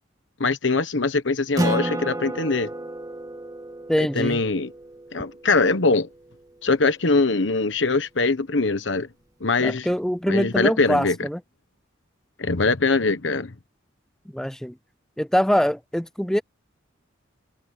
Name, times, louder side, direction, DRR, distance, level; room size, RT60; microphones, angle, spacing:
voice 1, 0.4-2.7 4.1-4.7 5.1-6.1 6.6-9.1 9.4-9.9 10.3-11.3 12.4-13.5, left 3 dB, 70° left, 1.2 m, -22 dB
Acoustic guitar, 1.6-6.5, right 1 dB, 20° right, 2.5 m, -31 dB
voice 2, 3.9-4.4 9.6-11.4 14.3-14.7 15.2-16.4, equal, 5° left, 0.4 m, -23 dB
head